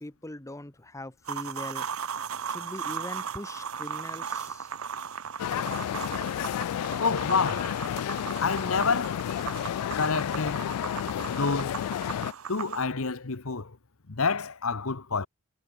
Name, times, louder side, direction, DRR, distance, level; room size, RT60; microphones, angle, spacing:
voice 1, 0.0-1.9 2.4-4.7, left 1 dB, 15° left, 1.0 m, -41 dB
sound 1, 1.3-12.9, right 7 dB, 70° right, 0.9 m, -37 dB
sound 2, 5.4-12.3, left 10 dB, 85° left, 0.3 m, -31 dB
voice 2, 7.0-7.7 8.4-9.3 10.0-10.7 11.3-11.9 12.5-13.8 14.1-15.3, left 4 dB, 70° left, 1.1 m, -28 dB
head